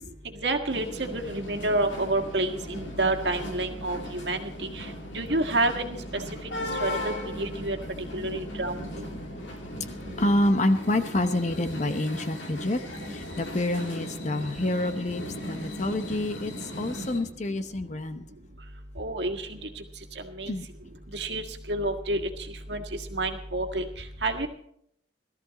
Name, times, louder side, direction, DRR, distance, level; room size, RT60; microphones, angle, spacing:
voice 1, 0.4-4.4 4.7-4.8 5.1-6.0 6.8-7.8 8.1-8.8 19.0-19.6 20.4-20.5 21.1-21.4 21.7-22.2 22.7-22.8 23.1-23.8 24.2-24.5, right 2 dB, 70° right, 5 dB, 1.7 m, -28 dB
sound 1, 0.7-17.2, left 1 dB, 85° left, 2.9 m, -38 dB
voice 2, 10.2-12.8 13.1-18.2 20.4-20.6, left 1 dB, 40° left, 9 dB, 0.9 m, -27 dB
18.0 x 13.5 x 4.1 m, 0.70 s
head